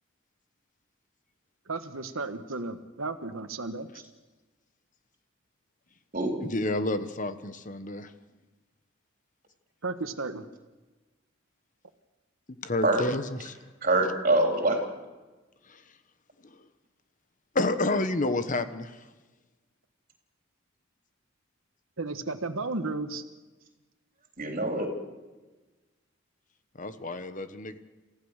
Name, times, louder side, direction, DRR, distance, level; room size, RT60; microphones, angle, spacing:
voice 1, 1.7-3.9 9.8-10.4 22.0-23.2, right 3 dB, 85° right, 8 dB, 1.4 m, -33 dB
voice 2, 6.5-8.1 12.6-13.6 15.7-15.8 17.5-19.0 26.8-27.8, left 2 dB, 40° left, 11 dB, 1.2 m, -29 dB
voice 3, 13.8-14.8 24.4-24.9, right 2 dB, 40° right, 3 dB, 3.9 m, -25 dB
28.5 x 15.5 x 6.5 m, 1.2 s
head